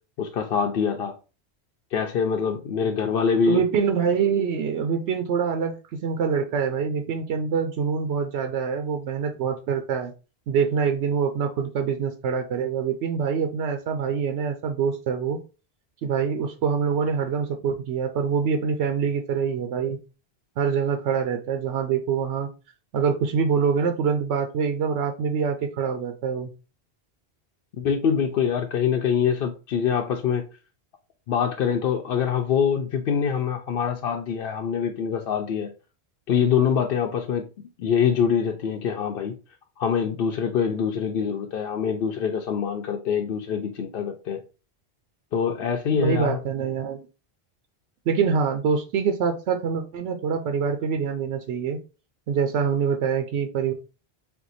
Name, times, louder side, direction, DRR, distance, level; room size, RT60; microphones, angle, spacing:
voice 1, 0.2-1.2 1.9-3.6 27.8-30.5 31.3-35.7 36.3-37.5 37.8-39.3 39.8-44.4 45.3-46.4, left 7 dB, 65° left, 0.7 m, -24 dB
voice 2, 3.5-5.8 6.0-10.1 10.5-15.4 16.0-20.0 20.6-22.5 22.9-26.5 45.9-47.1 48.1-51.8 52.3-53.7, right 6 dB, 90° right, 0.9 m, -25 dB
4.4 x 2.2 x 3.9 m
omnidirectional pair, 1.1 m